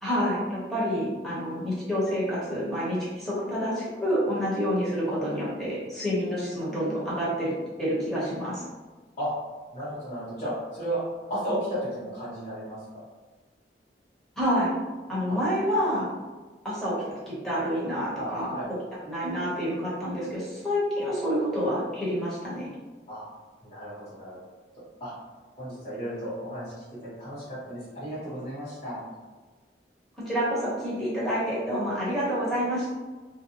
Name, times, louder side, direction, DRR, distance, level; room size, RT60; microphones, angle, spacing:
voice 1, 0.0-7.5 7.8-8.6 14.4-14.7 15.1-16.1 16.6-17.0 17.3-18.5 19.0-22.7 30.3-32.9, equal, ahead, -9 dB, 0.9 m, -28 dB
voice 2, 9.7-11.0 11.3-13.0 15.3-15.4 18.1-18.7 23.1-23.2 23.6-24.4 25.0-25.1 25.5-26.7 27.2-29.0, equal, 40° left, -13 dB, 1.3 m, -34 dB
2.5 x 2.1 x 2.9 m, 1.3 s
head